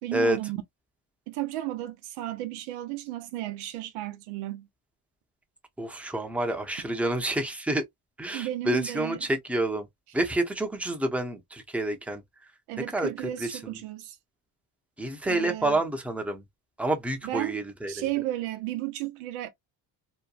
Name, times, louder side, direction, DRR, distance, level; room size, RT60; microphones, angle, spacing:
voice 1, 0.0-0.6 1.3-4.7 8.3-9.3 12.7-14.2 15.2-15.8 17.2-17.5 17.9-19.5, right 15 dB, 85° right, 0.7 m, -33 dB
voice 2, 5.8-7.9 8.2-9.9 10.1-12.2 12.9-13.1 13.4-13.8 15.0-16.4 16.8-18.1, right 1 dB, 5° right, 0.7 m, -28 dB
3.0 x 2.2 x 2.3 m
supercardioid pair, 75°, 49 cm